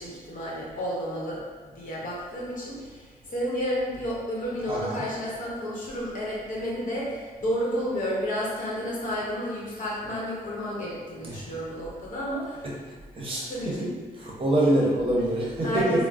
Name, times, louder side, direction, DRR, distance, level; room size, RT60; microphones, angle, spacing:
voice 1, 0.0-1.4 1.7-12.7 13.5-13.9 14.6-14.7 15.6-16.1, equal, 55° left, -5 dB, 0.9 m, -31 dB
voice 2, 4.7-5.0 11.2-11.5 13.1-13.4 14.2-15.8, right 1 dB, 35° right, -4 dB, 0.8 m, -25 dB
3.6 x 2.0 x 2.3 m, 1.4 s
cardioid pair, 100°, 16 cm